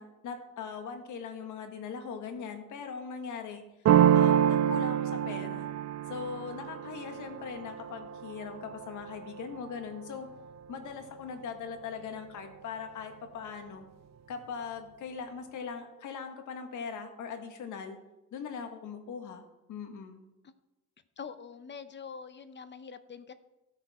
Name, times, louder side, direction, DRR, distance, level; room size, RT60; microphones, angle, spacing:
voice 1, 0.0-3.6 4.1-5.7 6.1-10.3 10.7-13.9 14.3-18.0 18.3-19.4 19.7-20.3, left 6 dB, 75° left, 5 dB, 1.7 m, -40 dB
sound 1, 3.8-9.4, right 10 dB, 60° right, 0.6 m, -27 dB
voice 2, 21.2-23.3, left 6 dB, 35° left, 12 dB, 0.8 m, -44 dB
16.0 x 6.5 x 4.3 m, 0.96 s
cardioid pair, 90°, 30 cm